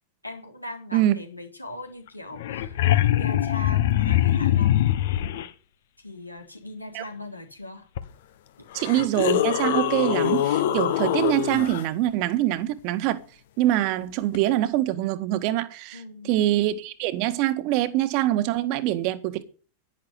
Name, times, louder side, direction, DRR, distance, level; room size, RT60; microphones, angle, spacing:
voice 1, 0.2-4.9 6.0-7.9 15.9-16.4, left 2 dB, 85° left, 3.5 m, -40 dB
sound 1, 2.1-2.2 2.3-5.5 8.0-8.1 8.7-11.8 14.3-14.4, left 12 dB, 55° left, 1.4 m, -23 dB
voice 2, 8.7-13.2 13.6-19.4, right 14 dB, 45° right, 1.8 m, -24 dB
11.5 x 10.5 x 9.8 m
figure-of-eight pair, 90°, 0 cm